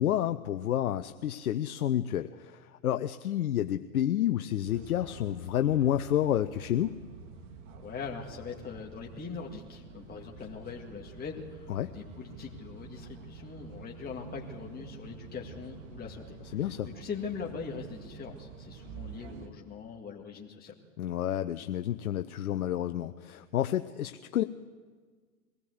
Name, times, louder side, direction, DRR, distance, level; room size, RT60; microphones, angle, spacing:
voice 1, 0.0-7.0 11.7-11.9 16.5-16.9 21.0-24.4, left 11 dB, 90° left, 9 dB, 0.7 m, -29 dB
sound 1, 4.7-19.5, right 5 dB, 60° right, 2.7 m, -48 dB
voice 2, 7.8-11.7 11.9-20.7, left 5 dB, 20° left, -1 dB, 2.1 m, -41 dB
22.0 x 16.5 x 7.9 m, 1.5 s
hypercardioid pair, 105°, 42 cm